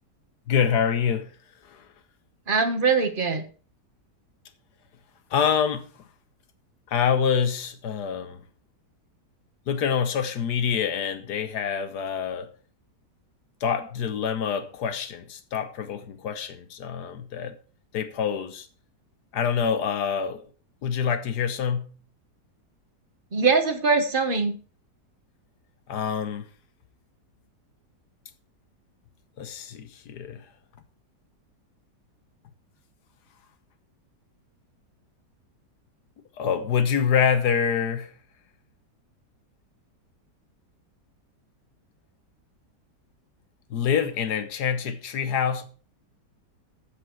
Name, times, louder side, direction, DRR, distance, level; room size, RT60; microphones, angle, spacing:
voice 1, 0.5-1.3 1.6-1.9 5.3-5.9 6.9-8.4 9.7-12.5 13.6-17.6 17.9-18.7 19.3-20.4 20.8-22.0 25.9-26.5 29.4-30.5 36.4-38.1 43.7-45.7, left 7 dB, 75° left, 1.5 m, -26 dB
voice 2, 2.5-3.4 23.3-24.6, right 4 dB, 35° right, 1.3 m, -22 dB
14.0 x 5.0 x 4.5 m
omnidirectional pair, 1.8 m